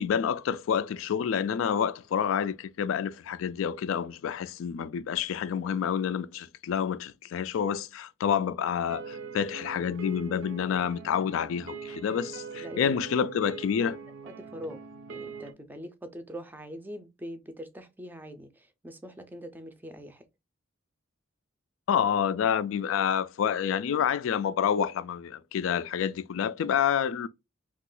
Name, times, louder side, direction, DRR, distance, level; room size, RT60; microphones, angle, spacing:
voice 1, 0.0-14.0 21.9-27.3, left 8 dB, 75° left, 0.3 m, -28 dB
sound 1, 8.9-15.5, right 5 dB, 65° right, 0.4 m, -42 dB
voice 2, 12.5-13.0 13.8-13.9 14.2-14.8 15.1-20.2, equal, 10° right, 0.4 m, -42 dB
2.9 x 2.4 x 3.7 m
head